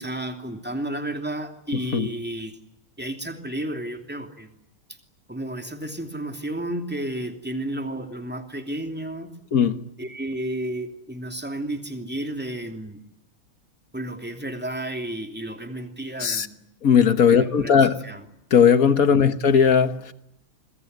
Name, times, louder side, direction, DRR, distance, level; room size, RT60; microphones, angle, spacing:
voice 1, 0.0-2.5 3.0-4.6 5.3-9.3 10.0-13.0 13.9-16.6 17.3-18.2 19.1-19.3, right 1 dB, 5° right, 2.7 m, -32 dB
voice 2, 9.5-9.8 16.2-16.5 16.8-18.0 18.5-20.1, left 7 dB, 45° left, 1.4 m, -18 dB
25.5 x 23.0 x 9.5 m
omnidirectional pair, 2.3 m